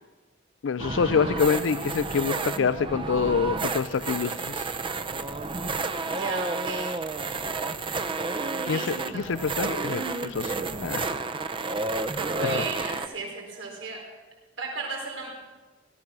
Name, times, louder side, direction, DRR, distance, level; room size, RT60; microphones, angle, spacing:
voice 1, 0.6-4.7 8.6-11.2 12.4-12.6, left 5 dB, 75° left, 12 dB, 0.4 m, -26 dB
sound 1, 0.8-13.1, right 3 dB, 25° right, 0.6 m, -31 dB
voice 2, 6.0-6.9 8.5-8.8 9.1-9.3 12.1-14.0 14.6-15.3, right 4 dB, 85° right, -1 dB, 4.4 m, -35 dB
17.5 x 13.5 x 6.0 m, 1.3 s
head